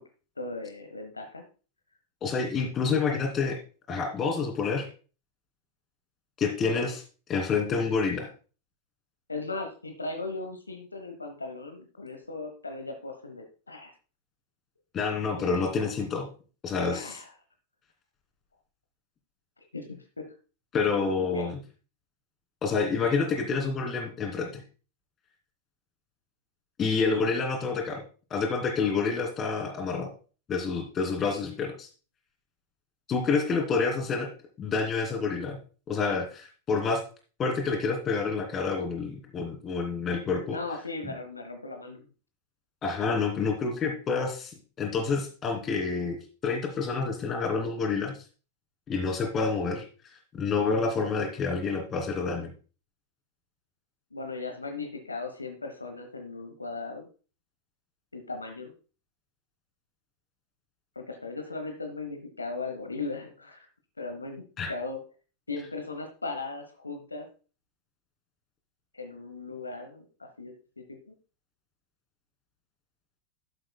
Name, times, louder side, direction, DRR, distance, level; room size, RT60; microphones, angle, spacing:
voice 1, 0.4-1.4 9.3-13.9 15.4-15.8 16.9-17.3 19.6-20.3 21.2-21.6 40.5-42.1 54.1-57.1 58.1-58.7 60.9-63.7 64.0-65.0 65.5-67.3 68.9-71.1, left 3 dB, 80° left, 5 dB, 1.1 m, -38 dB
voice 2, 2.2-3.6 3.9-4.9 6.4-7.0 7.3-8.3 14.9-16.3 16.6-17.2 20.7-21.6 22.6-24.6 26.8-28.0 28.3-30.1 30.5-31.9 33.1-34.3 34.6-35.6 35.9-37.0 37.4-40.6 42.8-48.1 48.9-49.9 50.3-52.5 64.6-64.7, left 4 dB, 25° left, 3 dB, 2.7 m, -28 dB
12.0 x 7.8 x 2.3 m, 0.37 s
figure-of-eight pair, 90°, 0 cm